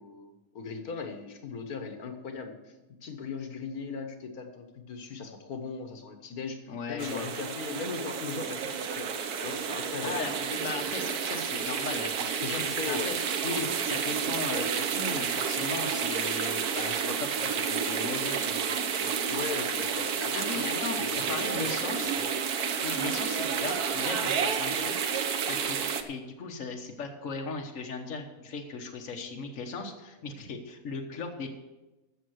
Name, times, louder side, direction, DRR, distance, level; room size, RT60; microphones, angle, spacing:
voice 1, 0.0-2.7 3.0-9.1 9.4-10.2 12.4-13.1 19.3-22.3, left 5 dB, 75° left, 5 dB, 1.8 m, -38 dB
voice 2, 6.7-7.3 10.0-12.6 12.9-13.1 13.4-19.1 20.3-21.0 21.3-22.1 22.8-25.0 25.5-31.6, left 4 dB, 60° left, 2 dB, 1.5 m, -37 dB
sound 1, 7.0-26.0, right 7 dB, 85° right, 1.4 m, -30 dB
15.5 x 6.6 x 6.4 m, 1.1 s
omnidirectional pair, 1.6 m